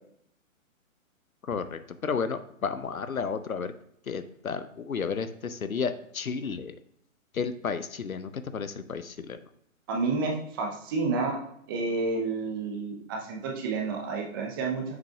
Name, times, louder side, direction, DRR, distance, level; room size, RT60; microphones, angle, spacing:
voice 1, 1.5-3.7 4.1-6.7 7.3-9.4, left 5 dB, 80° left, 12 dB, 0.8 m, -32 dB
voice 2, 9.9-11.4 11.7-15.0, right 3 dB, 15° right, 0 dB, 0.7 m, -30 dB
7.5 x 5.9 x 2.3 m, 0.72 s
figure-of-eight pair, 130°, 41 cm